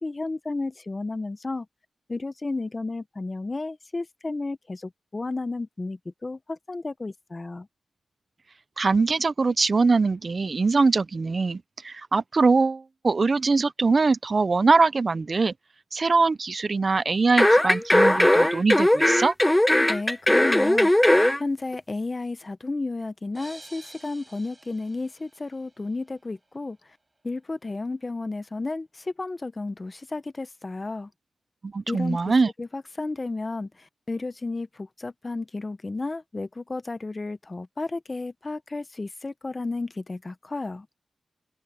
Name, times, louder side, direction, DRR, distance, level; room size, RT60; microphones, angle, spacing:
voice 1, 0.0-1.7 2.1-7.7 19.8-21.1 21.4-26.8 27.2-31.1 31.9-32.3 32.6-40.9, left 3 dB, 30° left, 0.9 m, -32 dB
voice 2, 8.8-15.5 15.9-19.3 31.6-32.5, right 4 dB, 45° right, 0.6 m, -22 dB
sound 1, 17.4-21.4 21.7-21.8, left 1 dB, 10° left, 0.3 m, -19 dB
sound 2, 23.4-26.1, right 2 dB, 25° right, 4.8 m, -49 dB
wide cardioid pair, 90°, 0 cm